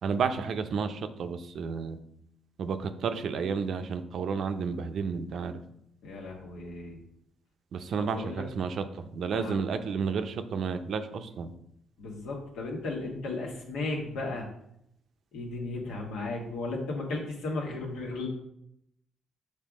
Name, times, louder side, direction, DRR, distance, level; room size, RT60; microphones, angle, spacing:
voice 1, 0.0-2.0 2.6-5.6 7.7-8.8 9.1-11.5, right 5 dB, 65° right, 9 dB, 0.6 m, -31 dB
voice 2, 6.0-7.0 8.0-8.4 9.3-9.6 12.0-14.5 15.3-18.3, left 2 dB, 85° left, -1 dB, 1.6 m, -35 dB
6.6 x 3.4 x 5.1 m, 0.75 s
cardioid pair, 90°, 0 cm